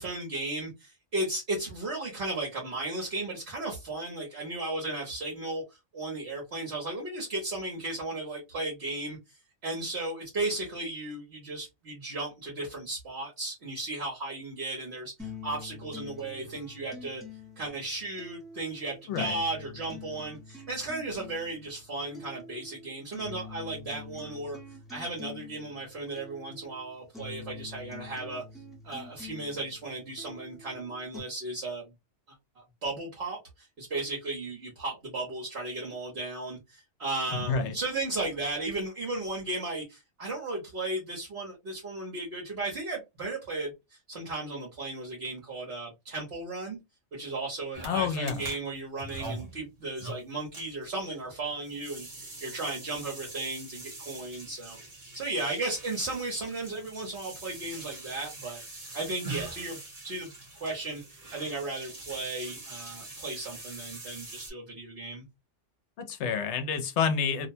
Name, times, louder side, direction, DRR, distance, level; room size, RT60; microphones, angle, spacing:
voice 1, 0.0-5.6 5.9-17.2 17.6-24.6 24.9-28.4 28.8-31.9 32.6-46.8 47.1-54.8 55.1-59.8 60.0-60.3 60.6-65.2, right 2 dB, 60° right, 1.2 m, -35 dB
sound 1, 15.2-31.2, left 4 dB, ahead, 0.7 m, -46 dB
voice 2, 37.3-37.7 47.8-48.4 66.0-67.5, left 6 dB, 70° left, 0.9 m, -29 dB
sound 2, 47.7-64.5, right 2 dB, 35° right, 0.9 m, -44 dB
2.7 x 2.1 x 2.6 m
omnidirectional pair, 1.2 m